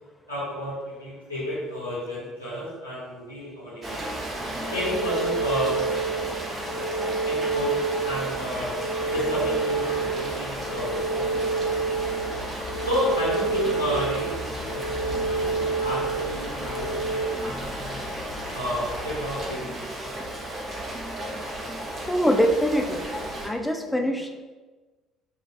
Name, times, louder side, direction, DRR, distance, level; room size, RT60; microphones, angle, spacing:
voice 1, 0.3-4.0 4.7-5.8 7.2-7.8 8.0-8.7 9.1-11.4 12.8-18.0 18.5-20.2, equal, 90° right, -10 dB, 0.9 m, -31 dB
Rain, 3.8-23.5, right 1 dB, 30° right, 0.7 m, -34 dB
sound 1, 4.6-17.3, right 4 dB, 70° right, 0.4 m, -29 dB
sound 2, 9.0-19.5, left 3 dB, 75° left, 0.6 m, -40 dB
voice 2, 22.1-23.0 23.4-24.4, equal, 5° left, 3 dB, 0.4 m, -23 dB
4.9 x 2.3 x 2.7 m, 1.3 s
figure-of-eight pair, 55°, 0 cm